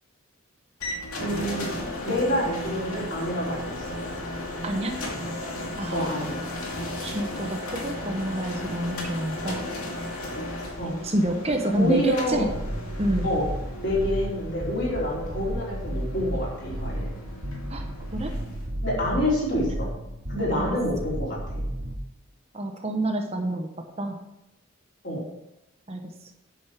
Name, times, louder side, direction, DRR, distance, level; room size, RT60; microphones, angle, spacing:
sound 1, 0.8-18.7, left 1 dB, 90° left, 2.5 m, -35 dB
voice 1, 1.2-1.7 2.0-4.0 5.9-6.4 10.8-10.9 11.7-12.5 13.2-13.5 13.8-17.1 18.8-19.9 20.3-21.6 25.0-25.2, left 1 dB, 50° left, -5 dB, 4.0 m, -27 dB
voice 2, 4.6-5.0 5.8-6.2 7.0-9.6 11.0-12.5 13.0-13.3 17.7-17.8 18.1-18.3 19.7-19.8 20.5-20.6 22.5-24.2 25.9-26.0, right 1 dB, 30° right, 3 dB, 1.0 m, -28 dB
sound 2, 12.3-21.9, right 1 dB, 55° right, 1.7 m, -33 dB
9.7 x 6.4 x 6.0 m, 0.89 s
head